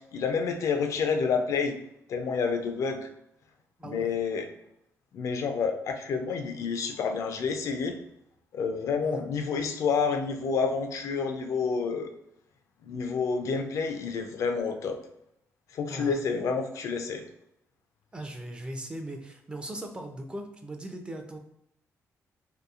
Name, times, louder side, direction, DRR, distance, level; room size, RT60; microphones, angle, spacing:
voice 1, 0.0-1.8 2.1-3.1 3.8-4.5 5.1-8.0 8.5-12.1 12.8-15.0 15.7-17.2, left 5 dB, 65° left, 6 dB, 0.4 m, -29 dB
voice 2, 3.8-4.1 9.0-9.2 15.9-16.2 18.1-21.4, right 1 dB, 15° right, 4 dB, 0.4 m, -39 dB
2.8 x 2.3 x 2.3 m, 0.76 s
cardioid pair, 110°, 6 cm